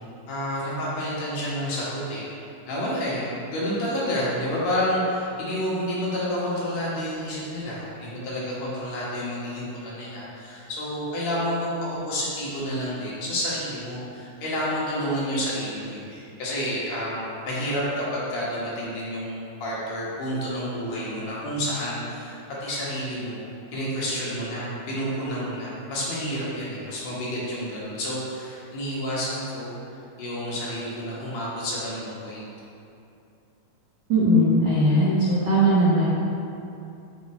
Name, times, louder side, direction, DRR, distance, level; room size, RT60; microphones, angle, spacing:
voice 1, 0.3-2.3 2.7-23.4 23.7-29.7 30.2-32.4, equal, 60° left, -7 dB, 2.3 m, -29 dB
voice 2, 34.1-36.0, equal, 80° right, -9 dB, 1.0 m, -19 dB
6.2 x 5.0 x 4.2 m, 2.7 s
omnidirectional pair, 3.8 m